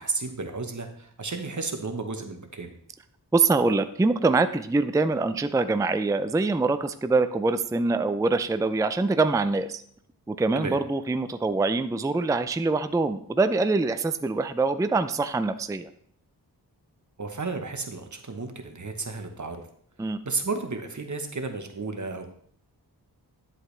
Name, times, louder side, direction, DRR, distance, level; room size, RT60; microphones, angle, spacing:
voice 1, 0.0-2.7 10.6-10.8 17.2-19.6 20.2-22.3, right 3 dB, 50° right, 6 dB, 1.1 m, -33 dB
voice 2, 3.3-9.8 10.3-15.9 20.0-20.2, right 3 dB, 10° right, 11 dB, 0.4 m, -24 dB
10.5 x 7.7 x 3.3 m, 0.63 s
wide cardioid pair, 80°, 39 cm